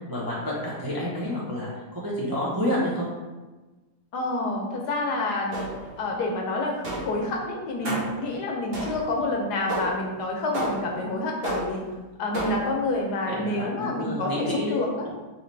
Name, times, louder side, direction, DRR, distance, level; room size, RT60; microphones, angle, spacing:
voice 1, 0.1-3.1 7.8-8.0 13.3-14.8, left 1 dB, 20° right, -7 dB, 0.5 m, -29 dB
voice 2, 4.1-5.7 6.0-11.8 12.2-15.1, left 2 dB, 80° left, 0 dB, 1.4 m, -28 dB
sound 1, 5.5-6.0 6.8-7.3 7.8-8.3 8.7-9.2 9.7-10.1 10.5-11.0 11.4-11.9 12.3-12.8, right 1 dB, 40° right, 1.1 m, -31 dB
4.9 x 3.0 x 3.2 m, 1.2 s
omnidirectional pair, 1.8 m